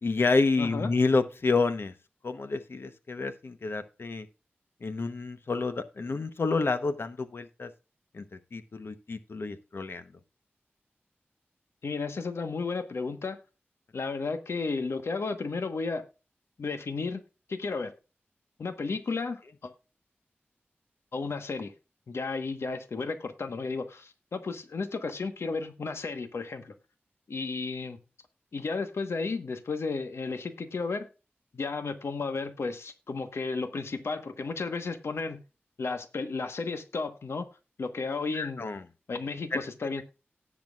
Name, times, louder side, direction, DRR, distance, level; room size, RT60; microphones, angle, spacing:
voice 1, 0.0-1.9 2.2-4.3 4.8-7.7 8.1-8.2 8.5-10.0 38.3-38.8 39.5-39.6, left 3 dB, 65° left, 10 dB, 0.9 m, -29 dB
voice 2, 0.6-0.9 11.8-13.4 13.9-16.0 16.6-17.2 17.5-17.9 18.6-19.7 21.1-21.7 22.1-26.7 27.3-28.0 28.5-31.1 31.5-35.4 35.8-37.4 37.8-38.6 39.1-40.0, left 4 dB, 85° left, 8 dB, 1.2 m, -33 dB
18.0 x 6.1 x 2.4 m, 0.31 s
wide cardioid pair, 90°, 4 cm